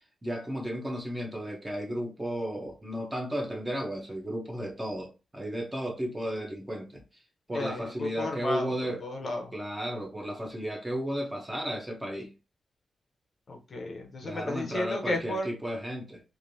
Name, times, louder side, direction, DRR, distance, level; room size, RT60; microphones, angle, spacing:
voice 1, 0.2-7.0 7.5-9.0 9.5-12.3 14.2-16.2, equal, 10° right, 0.7 m, -34 dB
voice 2, 7.5-8.7 9.0-9.5 13.5-15.5, left 1 dB, 40° left, 0.6 m, -33 dB
3.1 x 2.5 x 2.6 m
wide cardioid pair, 175°, 0 cm